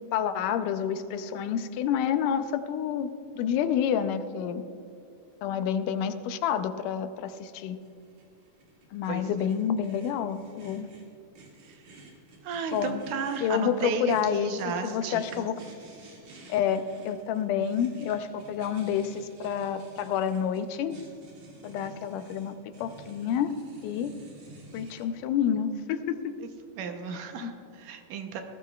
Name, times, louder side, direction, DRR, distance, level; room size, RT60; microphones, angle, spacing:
voice 1, 0.1-4.6 5.4-7.8 8.9-10.9 12.7-13.0 13.4-15.6 16.5-21.0 21.6-23.5 23.8-24.1 24.7-26.4 27.4-27.5, left 8 dB, 80° left, 10 dB, 2.2 m, -29 dB
sound 1, 7.8-25.1, right 2 dB, 60° right, 3.5 m, -52 dB
voice 2, 9.1-9.4 11.6-11.8 12.4-15.2 26.4-26.5 26.8-28.4, right 5 dB, 80° right, 5 dB, 2.4 m, -34 dB
20.0 x 15.0 x 2.3 m, 2.7 s
omnidirectional pair, 3.7 m